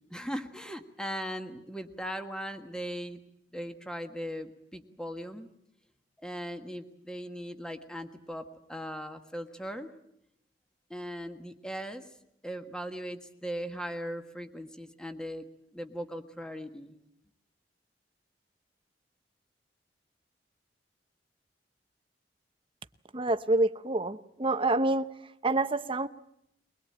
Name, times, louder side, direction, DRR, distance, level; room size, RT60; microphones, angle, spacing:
voice 1, 0.1-3.2 3.5-5.5 6.2-9.9 10.9-12.0 12.4-15.5 15.7-17.0, equal, 5° left, 6 dB, 1.6 m, -39 dB
voice 2, 23.1-26.1, right 2 dB, 30° right, 10 dB, 0.9 m, -27 dB
22.5 x 21.0 x 8.8 m, 0.76 s
head